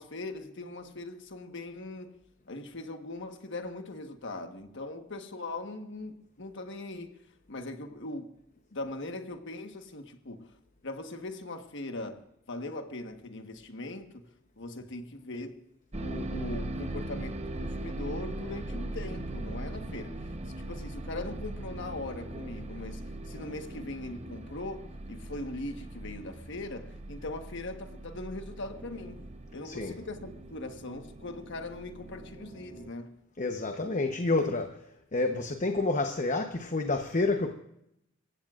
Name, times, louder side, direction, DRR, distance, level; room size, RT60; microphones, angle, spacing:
voice 1, 0.0-2.2 2.5-7.2 7.5-8.3 8.7-10.6 10.8-14.3 14.6-15.6 16.0-20.3 20.6-33.1, left 2 dB, 60° left, 1.3 m, -40 dB
sound 1, 15.9-32.9, right 1 dB, 30° right, 0.9 m, -40 dB
voice 2, 29.6-29.9 33.4-34.8 35.1-37.5, left 2 dB, 40° left, 0.9 m, -29 dB
26.0 x 15.5 x 2.5 m
head